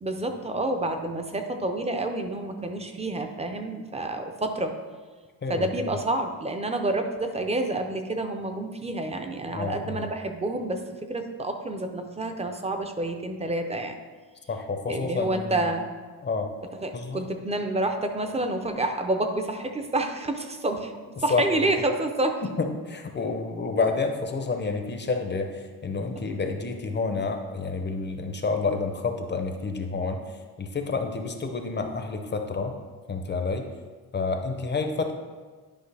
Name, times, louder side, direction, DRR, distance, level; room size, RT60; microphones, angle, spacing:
voice 1, 0.0-4.8 5.5-14.0 14.9-15.8 16.8-22.4, right 2 dB, 15° right, 5 dB, 0.5 m, -28 dB
voice 2, 5.4-6.0 9.5-10.1 14.5-15.7 16.2-16.5 16.9-17.2 21.3-21.7 22.4-30.2 30.6-32.7 33.1-33.7 34.1-35.1, left 4 dB, 30° left, 5 dB, 0.5 m, -29 dB
10.5 x 5.4 x 3.3 m, 1.4 s
wide cardioid pair, 175°, 38 cm